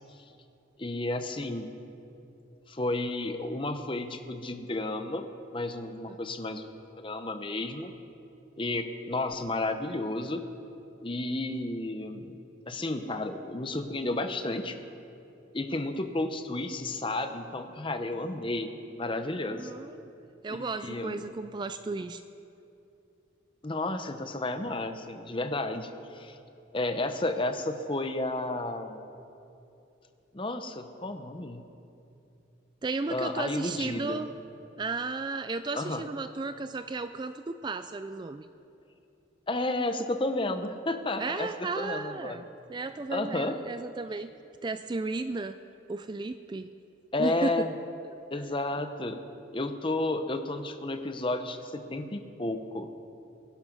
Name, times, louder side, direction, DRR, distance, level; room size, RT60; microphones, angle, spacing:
voice 1, 0.8-1.7 2.7-5.2 5.5-6.7 7.0-7.9 8.6-10.4 11.0-12.4 12.7-14.8 15.5-19.7 20.5-21.3 23.6-26.4 26.7-29.0 30.3-31.6 33.1-34.2 35.7-36.0 39.5-41.5 41.8-42.4 43.1-43.6 47.1-47.7 48.3-49.2 49.5-52.9, left 2 dB, 25° left, 8 dB, 0.8 m, -32 dB
voice 2, 19.5-20.1 20.4-22.2 32.8-34.3 34.8-38.5 41.2-42.4 42.7-44.3 44.6-45.6 45.9-46.7 47.2-47.5 48.1-48.2, right 3 dB, 20° right, 10 dB, 0.3 m, -34 dB
21.0 x 12.0 x 5.4 m, 2.8 s
head